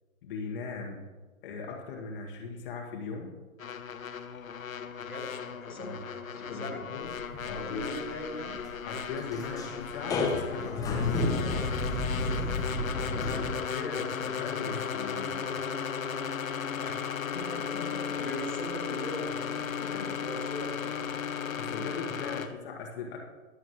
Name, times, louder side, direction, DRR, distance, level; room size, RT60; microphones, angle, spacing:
voice 1, 0.2-1.0 1.4-3.3 5.8-6.0 6.3-7.1 7.5-7.9 8.8-11.2 13.1-15.5 17.7-18.2 19.7-20.2 21.1-23.2, left 4 dB, 40° left, 0 dB, 1.8 m, -39 dB
sound 1, 3.6-22.5, left 7 dB, 70° left, 1.0 m, -36 dB
voice 2, 5.0-5.9 6.2-6.8 7.4-8.6 13.0-14.4 14.6-14.8 16.7-17.8 18.2-20.9, equal, 90° left, 0 dB, 3.5 m, -41 dB
sound 2, 7.0-13.5, left 2 dB, 10° left, 1.0 m, -31 dB
22.5 x 7.8 x 3.1 m, 1.2 s
figure-of-eight pair, 125°, 42 cm